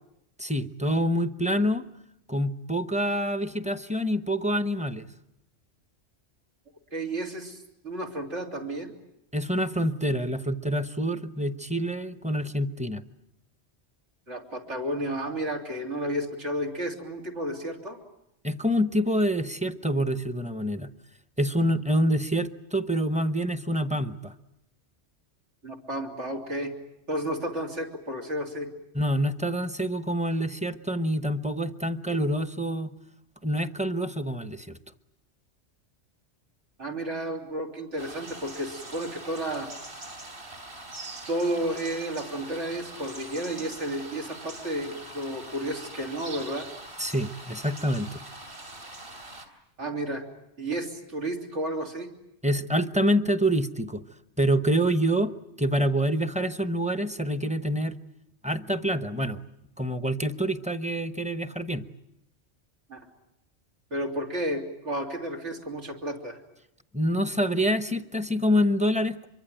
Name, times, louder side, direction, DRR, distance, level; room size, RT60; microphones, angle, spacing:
voice 1, 0.4-1.8 2.3-5.1 9.3-13.0 18.4-20.9 21.4-24.3 28.9-32.9 33.4-34.8 47.0-48.2 52.4-54.0 54.4-55.3 55.6-58.0 58.4-59.4 59.8-61.8 66.9-69.3, equal, 5° right, 10 dB, 0.8 m, -26 dB
voice 2, 6.9-8.9 14.3-18.0 25.6-26.7 27.1-28.7 36.8-39.7 41.3-46.7 49.8-50.2 50.6-52.1 62.9-63.1 63.9-66.4, right 1 dB, 80° right, 1 dB, 3.7 m, -32 dB
sound 1, 38.0-49.5, right 2 dB, 60° right, 4.1 m, -43 dB
26.0 x 23.5 x 9.0 m, 0.83 s
omnidirectional pair, 1.2 m